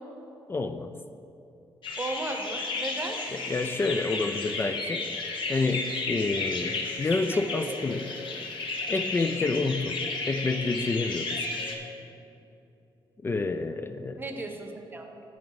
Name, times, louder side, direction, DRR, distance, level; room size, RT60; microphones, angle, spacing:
voice 1, 0.5-1.0 3.3-5.1 5.5-8.1 8.9-10.0 10.3-11.4 13.2-14.2, left 3 dB, 25° left, 8 dB, 0.3 m, -29 dB
sound 1, 1.8-11.8, left 3 dB, 65° left, 1.1 m, -33 dB
voice 2, 2.0-3.2 7.3-8.2 14.2-15.1, right 2 dB, 20° right, 4 dB, 0.8 m, -36 dB
14.0 x 4.8 x 4.0 m, 2.8 s
cardioid pair, 130°, 9 cm